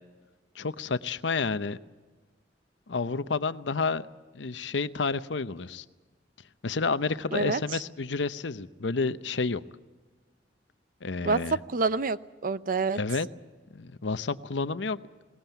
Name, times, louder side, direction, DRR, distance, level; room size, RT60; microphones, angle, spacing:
voice 1, 0.5-1.8 2.9-4.1 4.3-5.8 6.6-9.6 11.0-11.6 12.9-13.3 13.7-15.0, left 4 dB, 80° left, 13 dB, 0.8 m, -30 dB
voice 2, 7.3-7.8 11.2-13.0, right 4 dB, 50° right, 15 dB, 0.6 m, -28 dB
21.5 x 19.0 x 9.2 m, 1.3 s
head